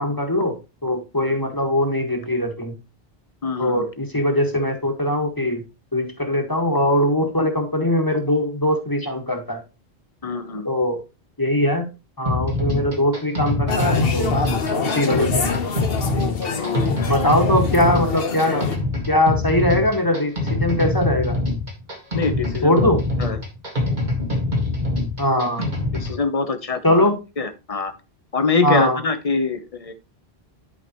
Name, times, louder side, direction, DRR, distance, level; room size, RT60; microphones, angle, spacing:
voice 1, 0.0-2.7 3.6-5.6 5.9-9.6 10.7-11.0 11.4-11.9 12.2-14.4 14.8-15.5 17.1-18.7 19.1-21.4 22.6-23.0 25.2-25.7 26.8-27.2 28.6-29.0, left 1 dB, 20° left, 3 dB, 1.7 m, -21 dB
voice 2, 3.4-3.8 10.2-10.7 16.4-16.9 22.1-22.9 23.2-23.4 25.6-25.7 25.9-27.0 27.4-27.9 28.3-29.9, left 4 dB, 35° left, 9 dB, 1.0 m, -24 dB
sound 1, 12.3-26.2, left 2 dB, 50° right, 2.1 m, -24 dB
sound 2, 13.7-18.8, left 4 dB, 70° left, 1.3 m, -25 dB
11.0 x 5.2 x 3.0 m, 0.28 s
omnidirectional pair, 1.0 m